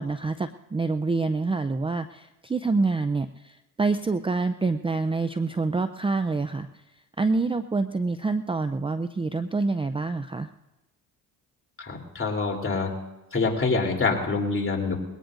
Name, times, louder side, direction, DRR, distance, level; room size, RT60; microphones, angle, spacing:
voice 1, 0.0-6.8 7.2-10.5, right 3 dB, 15° right, 10 dB, 0.5 m, -27 dB
voice 2, 11.8-12.9 13.3-15.0, left 4 dB, 35° left, 0 dB, 3.4 m, -26 dB
21.5 x 18.0 x 2.6 m, 1.0 s
cardioid pair, 80°, 39 cm